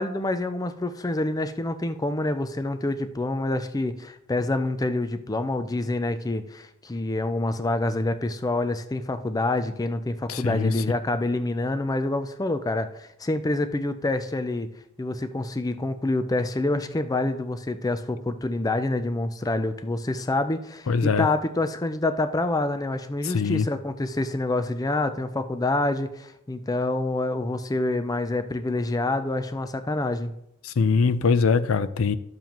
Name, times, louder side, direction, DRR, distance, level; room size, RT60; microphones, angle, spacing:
voice 1, 0.0-14.7 15.0-30.3, left 2 dB, 20° left, 0.5 m, -27 dB
voice 2, 10.3-10.7 20.9-21.3 23.2-23.7 30.6-32.2, left 5 dB, 80° left, 0.5 m, -22 dB
12.0 x 7.2 x 3.0 m
head